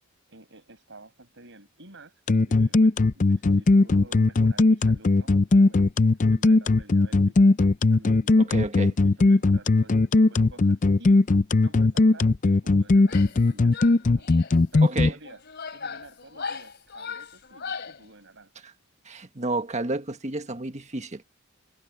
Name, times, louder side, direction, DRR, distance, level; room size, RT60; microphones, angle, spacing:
voice 1, 0.3-5.9 6.3-7.4 7.9-8.4 8.8-11.3 11.6-14.4 14.7-15.4 15.7-18.5, right 2 dB, 60° right, 7.0 m, -51 dB
sound 1, 2.3-15.1, left 3 dB, 40° left, 0.5 m, -18 dB
voice 2, 8.4-8.9 14.8-15.1 19.0-21.2, right 2 dB, 35° right, 1.5 m, -30 dB
Female speech woman speaking / Yell, 13.0-13.4 13.7-14.6 15.2-18.0, left 5 dB, 55° left, 3.3 m, -38 dB
head